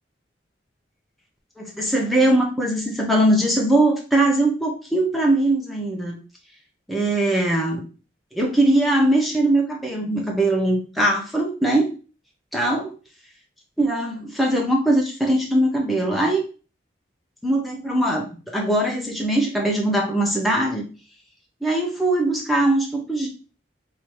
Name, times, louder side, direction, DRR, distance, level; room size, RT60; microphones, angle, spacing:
voice 1, 1.6-6.2 6.9-7.8 8.3-11.9 12.5-12.9 13.8-16.4 17.4-20.9 21.6-23.3, right 1 dB, ahead, -2 dB, 0.8 m, -21 dB
3.3 x 2.8 x 4.5 m, 0.35 s
head